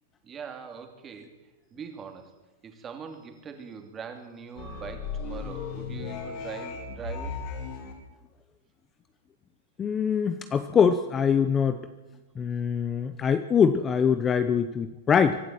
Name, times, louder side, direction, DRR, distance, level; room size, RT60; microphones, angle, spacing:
voice 1, 0.2-1.3 1.7-2.3 2.6-7.3 12.4-12.5, right 6 dB, 20° right, 5 dB, 2.8 m, -42 dB
sound 1, 4.6-7.9, left 5 dB, 45° left, 4.7 m, -36 dB
voice 2, 9.8-11.8 12.4-15.4, left 7 dB, 15° left, 10 dB, 0.8 m, -23 dB
24.0 x 12.0 x 9.1 m, 1.1 s
supercardioid pair, 155°, 0 cm